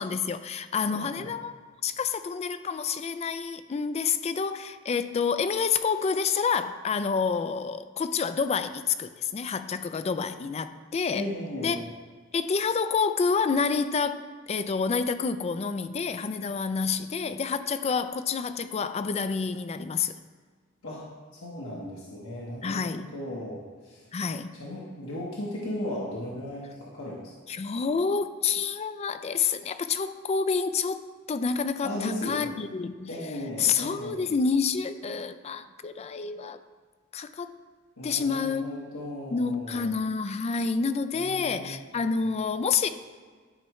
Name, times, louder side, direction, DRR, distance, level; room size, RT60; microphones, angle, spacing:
voice 1, 0.0-1.5 1.8-11.3 11.6-11.8 12.3-20.1 22.6-23.1 24.1-24.5 27.5-33.1 33.6-36.6 37.1-37.5 38.0-38.7 39.3-42.9, left 5 dB, 30° left, 10 dB, 0.3 m, -28 dB
voice 2, 0.9-1.3 11.1-11.8 20.8-21.0 21.3-22.8 23.1-24.0 24.5-27.2 31.8-32.5 33.1-34.3 38.0-39.9 41.1-42.0, left 1 dB, 75° left, -6 dB, 1.2 m, -36 dB
11.5 x 4.7 x 3.1 m, 1.5 s
head